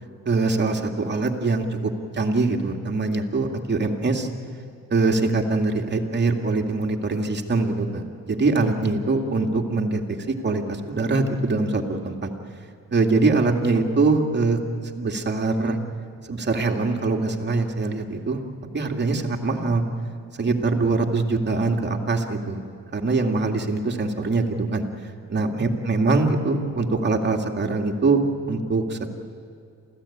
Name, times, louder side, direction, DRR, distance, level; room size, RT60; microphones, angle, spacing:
voice 1, 0.3-4.3 4.9-12.3 12.9-14.6 15.0-15.8 16.3-18.4 18.7-19.8 20.4-22.6 22.9-24.8 25.3-28.2 28.5-29.1, right 3 dB, 30° right, 2 dB, 2.3 m, -23 dB
27.5 x 15.5 x 8.7 m, 2.3 s
cardioid pair, 110°, 34 cm